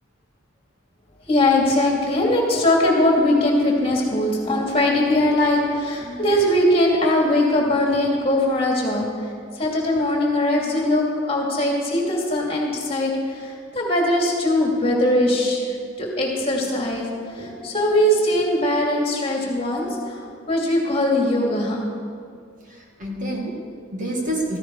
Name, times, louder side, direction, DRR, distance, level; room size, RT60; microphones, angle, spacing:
voice 1, 1.3-15.7 16.0-21.9, left 1 dB, 30° left, -1 dB, 2.5 m, -21 dB
voice 2, 22.6-24.6, right 1 dB, 40° right, -1 dB, 2.2 m, -28 dB
15.5 x 14.5 x 4.7 m, 2.2 s
head